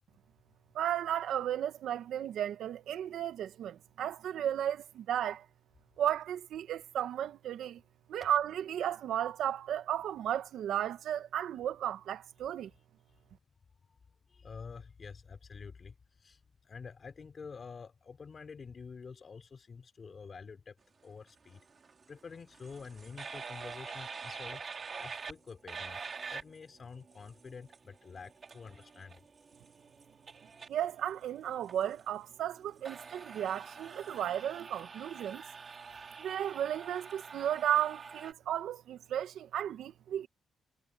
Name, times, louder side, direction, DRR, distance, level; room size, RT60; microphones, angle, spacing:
voice 1, 0.7-5.4 6.0-7.8 8.1-12.7 30.7-35.4 36.2-40.3, right 10 dB, 75° right, 1.4 m, -34 dB
voice 2, 14.3-20.8 21.0-21.6 22.1-29.2, left 5 dB, 40° left, 3.5 m, -48 dB
sound 1, 21.4-38.3, right 5 dB, 40° right, 4.6 m, -47 dB
cardioid pair, 105°, 0 cm